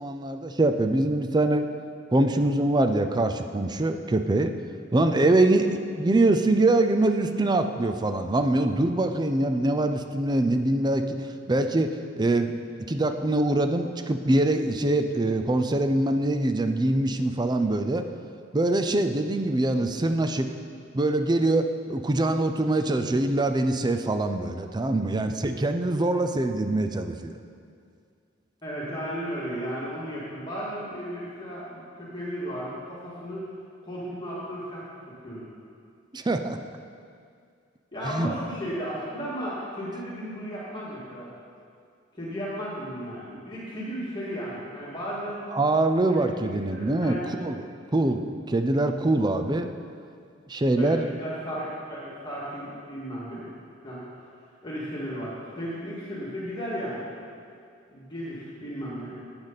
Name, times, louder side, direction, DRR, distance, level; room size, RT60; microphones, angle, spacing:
voice 1, 0.0-1.7 2.1-4.5 4.9-11.9 12.2-12.5 12.9-18.0 18.5-20.5 20.9-27.4 36.1-36.6 38.0-38.3 45.5-49.7 50.5-51.1, right 2 dB, 20° right, 8 dB, 0.5 m, -24 dB
voice 2, 28.6-33.5 33.8-34.8 35.2-35.4 37.9-41.3 42.1-45.5 46.1-47.4 50.8-53.5 53.8-54.0 54.6-57.1 57.9-59.1, equal, 25° left, -8 dB, 2.1 m, -34 dB
11.5 x 8.8 x 4.1 m, 2.3 s
head